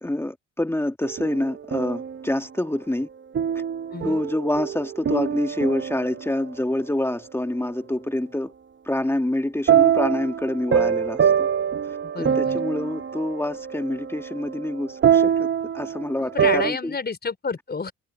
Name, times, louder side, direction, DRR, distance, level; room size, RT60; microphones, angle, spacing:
voice 1, 0.0-3.1 4.0-8.5 8.8-11.5 11.8-15.5 15.7-16.9, left 1 dB, 10° left, 2.3 m, -27 dB
sound 1, 1.0-2.3 3.4-6.6 9.7-16.7, right 8 dB, 40° right, 0.8 m, -24 dB
voice 2, 3.9-4.2 12.0-12.6 16.2-17.9, left 5 dB, 35° left, 4.8 m, -30 dB
cardioid pair, 90°, 30 cm